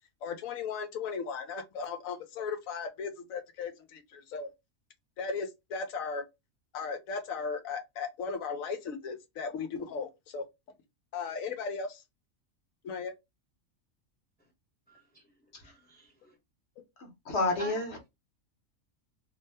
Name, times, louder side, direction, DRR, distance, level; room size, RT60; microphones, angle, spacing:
voice 1, 0.2-4.5 5.2-6.2 6.7-10.4 11.1-12.0 12.8-13.1, left 5 dB, 90° left, 1.1 m, -36 dB
voice 2, 14.9-15.2 15.6-16.3 17.5-17.8, right 1 dB, 10° left, 0.7 m, -46 dB
voice 3, 17.0-18.0, left 2 dB, 55° left, 1.1 m, -30 dB
2.7 x 2.1 x 3.2 m
omnidirectional pair, 1.4 m